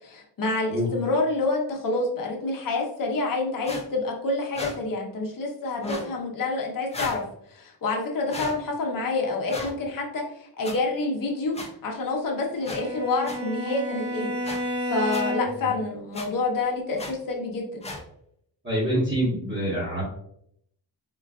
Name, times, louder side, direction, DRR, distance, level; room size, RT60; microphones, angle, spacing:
voice 1, 0.0-14.3 14.9-17.9, left 3 dB, 50° left, 0 dB, 0.8 m, -28 dB
sound 1, 3.6-3.8 4.5-4.7 5.8-6.1 6.9-7.2 8.3-8.5 9.5-9.7 10.6-10.7 11.5-11.7 12.6-12.8 13.2-13.4 14.4-14.6 15.1-15.2 16.1-16.3 17.0-17.1 17.8-18.0, left 2 dB, 15° left, 0.3 m, -34 dB
Bowed string instrument, 12.6-15.7, equal, 70° right, 1.5 m, -31 dB
voice 2, 18.6-20.0, equal, 25° right, -7 dB, 1.1 m, -26 dB
3.8 x 2.3 x 2.3 m, 0.71 s
wide cardioid pair, 140°, 43 cm